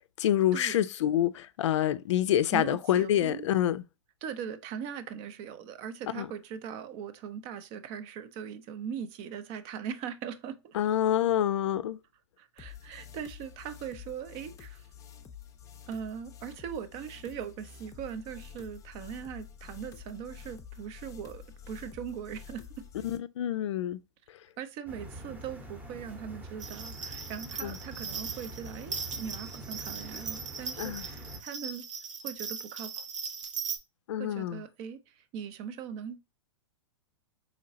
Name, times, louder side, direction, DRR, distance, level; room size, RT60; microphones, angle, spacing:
voice 1, 0.2-3.8 6.1-6.3 10.7-12.0 23.0-24.0 27.6-27.8 30.8-31.1 34.1-34.6, left 11 dB, 70° left, 0.4 m, -27 dB
voice 2, 2.5-3.5 4.2-10.8 12.4-14.8 15.9-22.9 24.6-31.8 32.2-33.1 34.2-36.2, right 8 dB, 40° right, 0.5 m, -40 dB
sound 1, 12.6-23.2, left 8 dB, 20° left, 0.5 m, -49 dB
sound 2, 24.8-31.4, equal, 10° right, 0.8 m, -45 dB
sound 3, 26.6-33.8, right 6 dB, 80° right, 0.7 m, -39 dB
3.8 x 3.1 x 2.6 m
hypercardioid pair, 115°, 16 cm